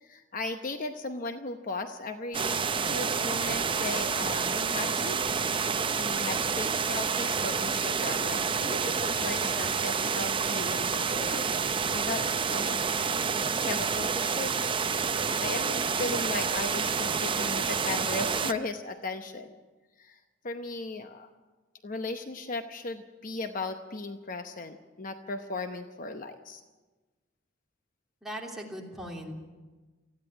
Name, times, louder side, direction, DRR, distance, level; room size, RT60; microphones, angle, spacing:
voice 1, 0.0-5.2 6.0-11.5 11.9-12.9 13.6-14.6 15.1-19.6 20.0-20.2 20.4-21.3 21.8-26.6, left 3 dB, 45° left, 7 dB, 0.9 m, -37 dB
sound 1, 2.3-18.5, right 5 dB, 25° right, 0.6 m, -28 dB
voice 2, 28.2-29.3, equal, ahead, -2 dB, 3.1 m, -39 dB
19.5 x 14.5 x 9.0 m, 1.3 s
head